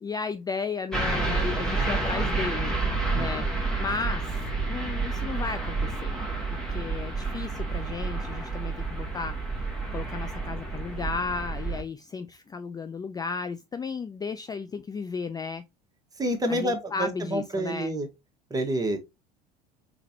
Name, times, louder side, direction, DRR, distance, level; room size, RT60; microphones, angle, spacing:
voice 1, 0.0-2.8 3.1-3.5 3.8-6.2 6.7-9.4 9.9-15.6 16.5-17.9, left 5 dB, 20° left, 0.3 m, -34 dB
sound 1, 0.9-11.8, right 3 dB, 5° left, 1.6 m, -29 dB
voice 2, 3.1-3.6 16.2-18.1 18.5-19.0, right 1 dB, 20° right, 1.3 m, -28 dB
3.8 x 3.4 x 2.9 m
hypercardioid pair, 70°, 20 cm